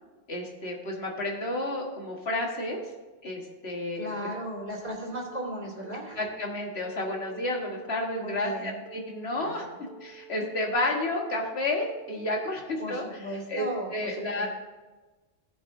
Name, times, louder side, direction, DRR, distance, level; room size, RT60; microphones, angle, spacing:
voice 1, 0.3-2.9 3.2-4.3 6.2-9.6 10.0-13.0 13.5-14.5, left 1 dB, 65° left, -1 dB, 2.0 m, -31 dB
voice 2, 3.9-6.2 8.1-8.8 9.3-9.8 12.8-14.5, right 1 dB, 55° right, -3 dB, 3.2 m, -36 dB
Telephone, 4.8-5.3 5.8-6.3 6.8-7.4 7.8-8.4 8.9-9.4 9.9-10.4 10.9-11.4 11.9-12.4, right 5 dB, 85° left, 1.0 m, -49 dB
16.5 x 6.9 x 2.7 m, 1.2 s
omnidirectional pair, 1.1 m